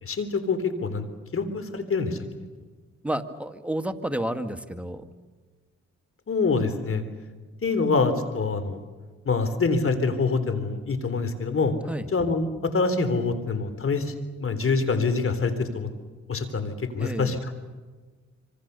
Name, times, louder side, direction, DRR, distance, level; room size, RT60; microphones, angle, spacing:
voice 1, 0.0-1.1 1.3-2.2 6.3-7.0 7.6-8.8 9.3-11.7 12.1-14.1 14.4-15.9 16.3-17.6, left 4 dB, 50° left, 10 dB, 3.7 m, -25 dB
voice 2, 3.0-5.0 11.9-12.1 17.0-17.4, right 1 dB, 5° right, 7 dB, 2.0 m, -30 dB
26.0 x 25.0 x 6.9 m, 1.4 s
cardioid pair, 60°, 29 cm